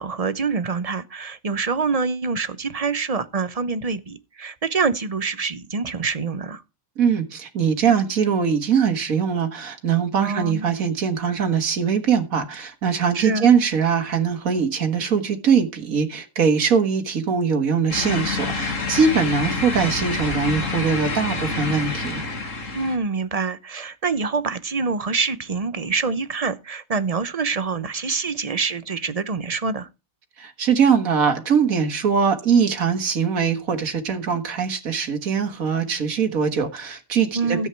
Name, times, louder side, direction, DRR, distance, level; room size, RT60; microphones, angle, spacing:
voice 1, 0.0-6.6 10.2-10.7 13.1-13.5 22.7-29.9 37.3-37.7, right 4 dB, 30° right, 0.9 m, -26 dB
voice 2, 7.0-22.2 30.4-37.7, right 6 dB, 80° right, 2.1 m, -21 dB
sound 1, 17.9-23.0, left 3 dB, 65° left, 2.3 m, -27 dB
13.5 x 8.3 x 4.6 m
omnidirectional pair, 1.4 m